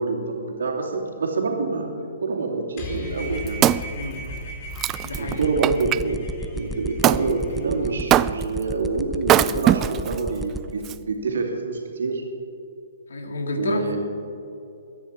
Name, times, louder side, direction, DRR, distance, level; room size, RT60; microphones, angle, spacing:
voice 1, 0.0-3.6 5.2-6.2 6.5-12.2 13.6-14.0, right 4 dB, 70° right, 1 dB, 2.8 m, -26 dB
sound 1, 2.8-8.4, left 2 dB, 40° left, 2.7 m, -37 dB
Wood, 3.0-6.0 7.0-7.3 8.1-8.6 9.2-10.2 10.8-10.9, right 12 dB, 25° right, 0.3 m, -21 dB
voice 2, 3.9-4.5 5.0-5.4 13.1-13.8, left 2 dB, 75° left, 5 dB, 2.1 m, -30 dB
sound 2, 5.1-10.7, right 1 dB, 5° left, 0.7 m, -31 dB
22.0 x 10.0 x 4.3 m, 2.6 s
figure-of-eight pair, 125°, 0 cm